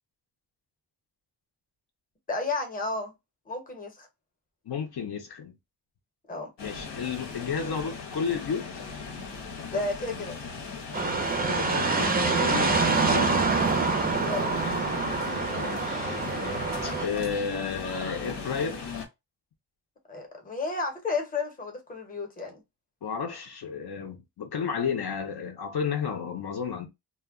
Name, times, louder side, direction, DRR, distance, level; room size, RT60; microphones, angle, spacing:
voice 1, 2.3-3.1 3.5-4.1 6.3-6.5 9.7-10.4 14.2-14.5 20.1-22.6, left 3 dB, 20° left, 0.7 m, -32 dB
voice 2, 4.7-5.5 6.6-8.9 11.5-13.4 15.6-18.9 23.0-26.9, left 6 dB, 65° left, 0.6 m, -32 dB
sound 1, 6.6-19.1, left 4 dB, 85° left, 0.9 m, -38 dB
sound 2, 10.9-17.1, right 4 dB, 25° right, 0.4 m, -26 dB
2.2 x 2.1 x 3.4 m
wide cardioid pair, 145°, 42 cm